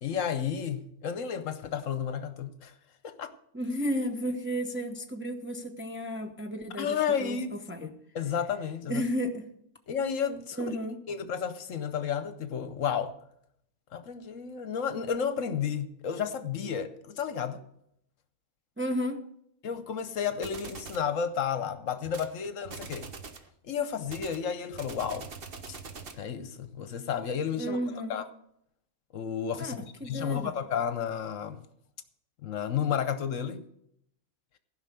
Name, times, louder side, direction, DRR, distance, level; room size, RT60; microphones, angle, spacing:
voice 1, 0.0-2.7 3.0-3.3 6.7-7.5 7.8-9.0 9.9-10.8 11.1-13.2 13.9-17.6 19.6-23.1 23.6-25.3 26.2-27.8 28.1-28.2 29.1-29.8 30.0-31.6 32.4-33.7, left 7 dB, 65° left, 1.1 m, -32 dB
voice 2, 3.5-7.9 8.9-9.5 10.6-11.0 18.8-19.2 27.6-28.2 29.6-30.5, equal, 10° right, 0.7 m, -33 dB
sound 1, 20.4-21.1 22.0-22.3 22.6-23.5 24.1-26.3, right 5 dB, 45° right, 1.0 m, -43 dB
15.0 x 5.6 x 6.8 m
omnidirectional pair, 1.5 m